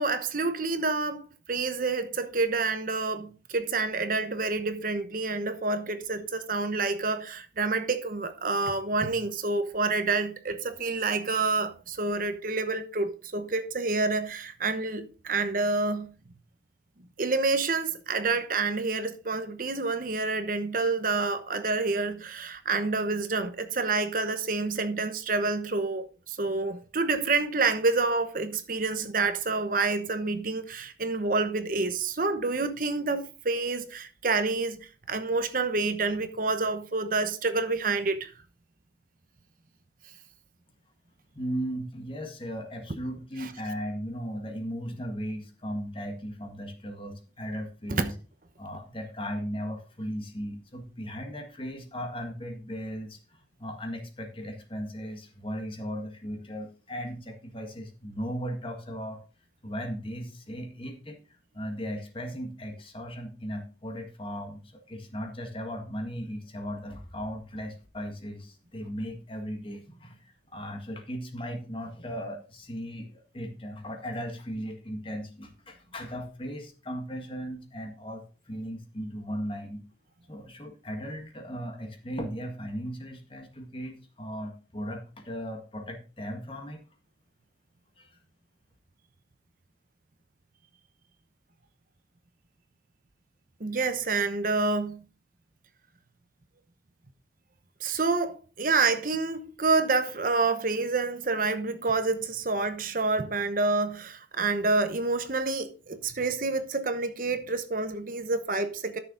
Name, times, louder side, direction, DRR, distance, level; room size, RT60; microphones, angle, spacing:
voice 1, 0.0-16.1 17.2-38.3 43.4-43.5 47.9-48.1 93.6-95.0 97.8-109.0, right 3 dB, 50° right, 1.0 m, -28 dB
voice 2, 41.3-48.2 48.6-59.2 59.6-61.2 61.5-79.8 80.3-86.8 88.0-88.1, equal, 30° left, 1.7 m, -37 dB
12.5 x 6.8 x 3.9 m
head